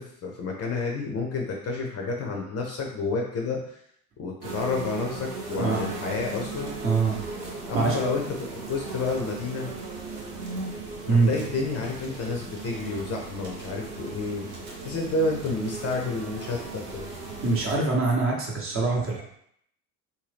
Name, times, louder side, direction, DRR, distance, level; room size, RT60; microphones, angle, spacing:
voice 1, 0.0-3.8 4.2-6.7 7.7-9.7 11.1-14.5 14.8-17.0, left 3 dB, 35° left, 0 dB, 0.6 m, -30 dB
sound 1, 4.4-17.8, right 3 dB, 90° right, 0.7 m, -37 dB
voice 2, 6.8-7.2 7.7-8.0 11.1-11.3 17.4-19.2, right 3 dB, 30° right, -2 dB, 0.9 m, -23 dB
2.7 x 2.2 x 3.3 m, 0.69 s
figure-of-eight pair, 65°, 46 cm